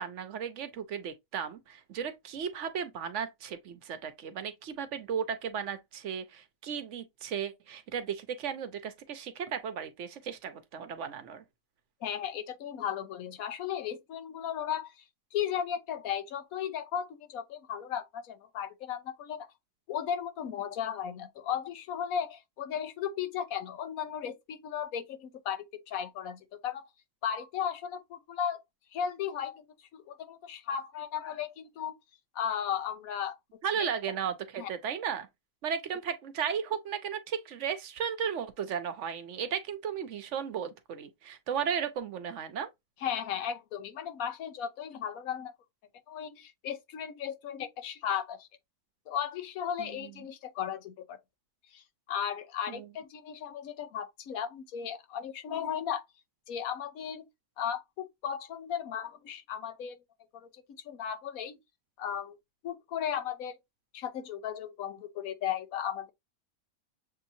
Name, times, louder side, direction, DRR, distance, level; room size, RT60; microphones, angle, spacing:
voice 1, 0.0-11.4 33.6-35.3 35.6-42.7 49.8-50.1 52.7-52.8, right 7 dB, 65° right, 1.0 m, -35 dB
voice 2, 12.0-15.0 15.3-19.5 19.9-26.9 27.2-28.6 28.9-29.6 29.9-31.9 32.3-33.4 33.7-33.9 34.6-34.7 43.0-45.5 46.1-48.5 49.1-51.2 51.7-56.0 56.5-57.3 57.6-60.0 60.3-60.5 60.8-61.6 62.0-62.4 62.6-63.5 63.9-66.1, left 9 dB, 90° left, 1.2 m, -35 dB
6.9 x 2.8 x 2.6 m
omnidirectional pair, 1.4 m